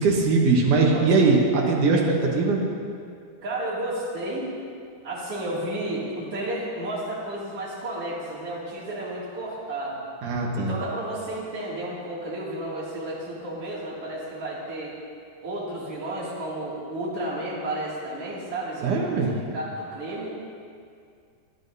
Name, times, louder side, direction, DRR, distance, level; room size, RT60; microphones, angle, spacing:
voice 1, 0.0-2.6 10.2-10.7 18.8-19.3, right 3 dB, 60° right, -1 dB, 2.4 m, -21 dB
voice 2, 0.7-1.1 1.3-1.4 3.4-4.5 5.0-10.0 10.5-14.9 15.4-19.0 19.3-20.3, right 1 dB, 40° right, -7 dB, 3.1 m, -32 dB
18.0 x 11.5 x 2.7 m, 2.3 s
omnidirectional pair, 4.6 m